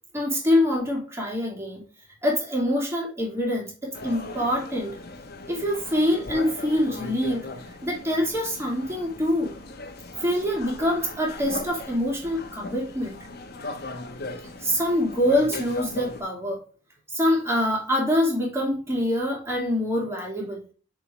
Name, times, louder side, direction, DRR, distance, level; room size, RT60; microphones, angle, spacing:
voice 1, 0.1-1.8 2.2-5.0 5.5-7.5 7.8-9.5 10.2-13.2 14.6-16.6 17.1-20.7, left 1 dB, 15° right, 2.6 m, -25 dB
sound 1, 3.9-16.2, left 2 dB, 55° left, 1.1 m, -38 dB
6.7 x 4.7 x 3.2 m
head